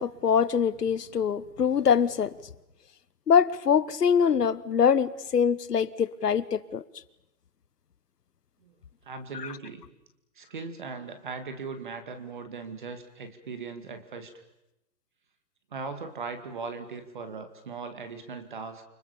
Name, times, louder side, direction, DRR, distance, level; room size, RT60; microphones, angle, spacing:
voice 1, 0.0-2.3 3.3-6.8, left 7 dB, 70° left, 1.3 m, -24 dB
voice 2, 9.0-9.8 10.4-14.3 15.7-18.8, right 4 dB, 30° right, 2.1 m, -39 dB
29.0 x 25.5 x 7.1 m
hypercardioid pair, 180°, 50 cm